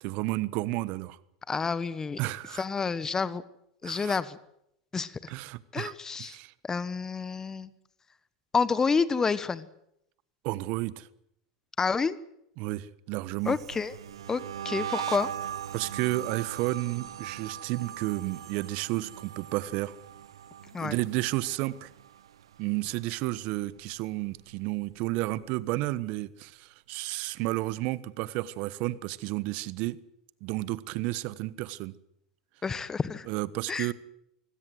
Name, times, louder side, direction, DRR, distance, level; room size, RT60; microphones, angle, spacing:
voice 1, 0.0-1.2 2.2-2.7 3.8-4.2 5.3-5.9 6.2-6.5 10.4-11.1 12.6-13.6 15.7-19.9 20.8-21.9 22.6-30.0 30.4-31.9 33.3-33.9, right 18 dB, 60° right, 18 dB, 1.2 m, -32 dB
voice 2, 1.5-2.2 2.6-3.4 3.8-4.4 4.9-5.3 5.7-6.4 6.6-7.7 8.5-9.7 11.8-12.2 13.4-13.9 14.3-15.3 20.7-21.0 32.6-33.3 33.7-33.9, left 5 dB, 20° left, 17 dB, 1.1 m, -29 dB
sound 1, 13.4-22.6 22.9-23.3 23.6-25.2, right 10 dB, 90° right, 0.8 m, -40 dB
24.5 x 16.5 x 7.9 m, 0.78 s
hypercardioid pair, 100°, 3 cm